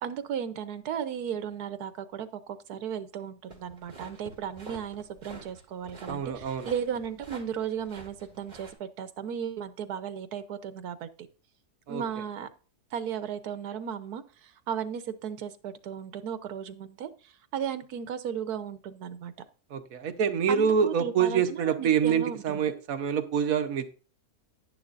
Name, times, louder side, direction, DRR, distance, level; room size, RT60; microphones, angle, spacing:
voice 1, 0.0-11.1 11.9-12.5 12.9-19.3 20.5-22.6, right 8 dB, 85° right, 12 dB, 1.4 m, -35 dB
sound 1, 3.5-8.7, right 3 dB, 30° right, 2.0 m, -47 dB
voice 2, 6.1-6.7 11.9-12.0 19.7-23.9, right 7 dB, 70° right, 9 dB, 1.3 m, -26 dB
10.5 x 10.5 x 2.5 m, 0.36 s
omnidirectional pair, 1.6 m